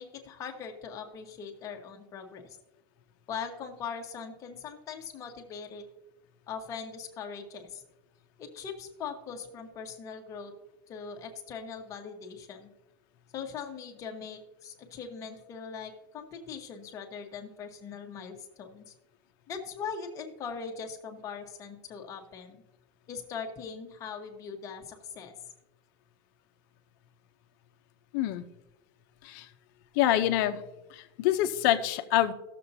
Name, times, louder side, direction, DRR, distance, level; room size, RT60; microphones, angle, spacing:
voice 1, 0.0-2.6 3.3-5.8 6.5-7.8 8.4-10.5 10.9-12.7 13.3-18.9 19.5-22.6 23.1-25.3, left 6 dB, 25° left, 2 dB, 1.2 m, -41 dB
voice 2, 28.1-28.4 29.2-29.5 30.0-30.6 30.9-32.3, left 13 dB, 55° left, 8 dB, 0.7 m, -26 dB
17.0 x 6.9 x 2.8 m, 1.0 s
supercardioid pair, 170°, 12 cm